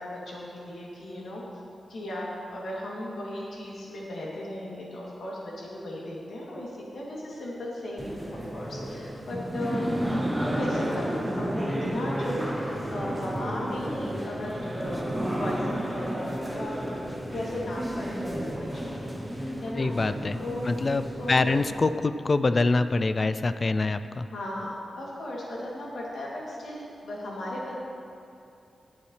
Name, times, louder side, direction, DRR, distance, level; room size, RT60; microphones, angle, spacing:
voice 1, 0.0-1.4 1.9-9.8 10.4-11.5 11.8-15.0 15.4-16.7 17.3-18.9 19.2-19.9 20.4-20.7 21.2-21.4 24.3-27.8, left 1 dB, 80° left, -5 dB, 2.8 m, -36 dB
sound 1, 8.0-21.9, equal, 10° right, 1.0 m, -32 dB
voice 2, 19.8-20.4 20.6-24.3, left 3 dB, 35° left, 12 dB, 0.3 m, -25 dB
20.0 x 7.1 x 3.3 m, 2.6 s
wide cardioid pair, 145°, 0 cm